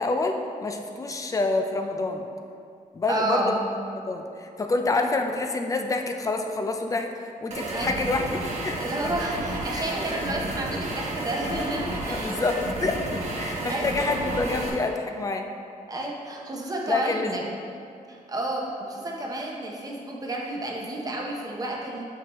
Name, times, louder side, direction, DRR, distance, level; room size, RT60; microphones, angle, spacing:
voice 1, 0.0-2.2 2.9-3.6 4.1-8.9 9.7-9.9 12.1-15.5 16.9-17.5, left 3 dB, 25° left, 5 dB, 0.4 m, -27 dB
voice 2, 3.1-3.6 7.7-8.0 8.8-12.3 13.4-13.9 15.9-17.4 18.1-22.0, right 1 dB, 25° right, -1 dB, 0.8 m, -31 dB
sound 1, 7.5-14.7, right 1 dB, 50° right, 1.0 m, -31 dB
7.6 x 4.6 x 3.0 m, 2.4 s
wide cardioid pair, 150°, 15 cm